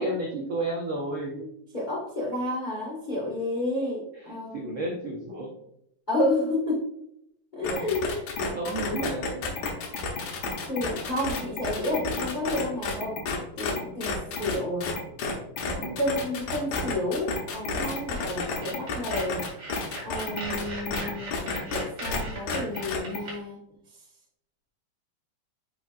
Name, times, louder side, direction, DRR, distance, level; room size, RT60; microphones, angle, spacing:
voice 1, 0.0-1.4 4.1-5.5 7.6-7.9 8.5-9.6 15.8-16.0, right 2 dB, 75° right, -2 dB, 1.1 m, -32 dB
voice 2, 1.4-4.9 6.1-6.9 7.5-8.7 10.7-13.2 13.6-14.9 15.7-19.4 20.0-23.6, left 1 dB, 30° left, -4 dB, 0.8 m, -31 dB
sound 1, 7.6-22.2 22.5-23.2, left 4 dB, 70° left, 2.6 m, -31 dB
sound 2, 18.1-23.3, right 1 dB, 35° right, 2.9 m, -38 dB
9.4 x 4.9 x 2.5 m, 0.78 s
omnidirectional pair, 3.9 m